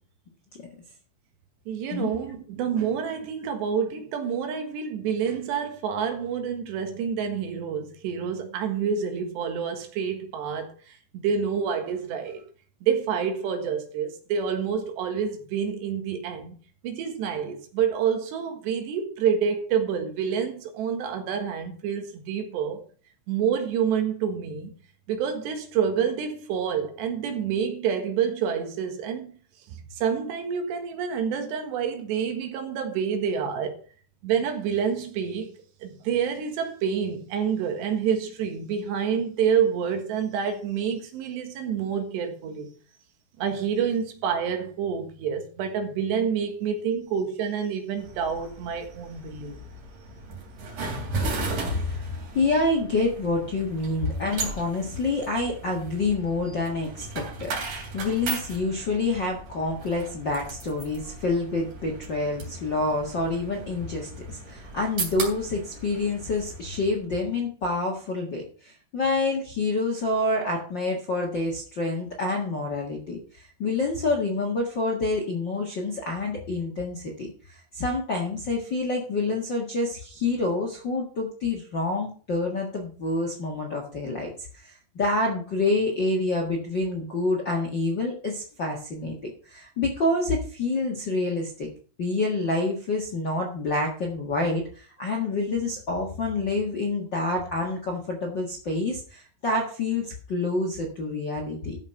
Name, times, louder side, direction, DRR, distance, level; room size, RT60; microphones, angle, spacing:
voice 1, 1.7-12.4 12.8-16.6 16.8-22.8 23.3-24.7 25.1-29.3 30.0-33.8 34.2-35.5 35.8-42.7 43.4-49.6, right 7 dB, 90° right, 3.7 m, -28 dB
sound 1, 48.0-67.0, right 3 dB, 55° right, 4.4 m, -37 dB
voice 2, 51.7-91.7 92.0-101.8, left 2 dB, 55° left, 1.2 m, -27 dB
13.0 x 5.8 x 5.7 m
omnidirectional pair, 4.8 m